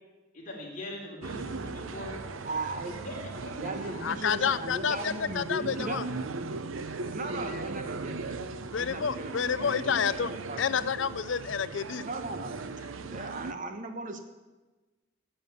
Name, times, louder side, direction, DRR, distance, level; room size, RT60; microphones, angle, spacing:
voice 1, 0.3-2.2 3.0-3.2 3.4-3.5 3.8-4.1 7.5-7.6 12.8-12.9, left 1 dB, 40° left, -3 dB, 3.7 m, -42 dB
sound 1, 1.2-13.5, right 3 dB, 80° right, 0.7 m, -38 dB
voice 2, 2.4-3.0 3.5-6.0 7.1-10.6 12.0-12.6 13.0-14.2, right 2 dB, 40° right, 6 dB, 1.2 m, -38 dB
voice 3, 4.0-6.0 8.7-10.3 10.6-12.0, left 7 dB, 65° left, 14 dB, 0.5 m, -29 dB
11.0 x 7.7 x 9.2 m, 1.2 s
head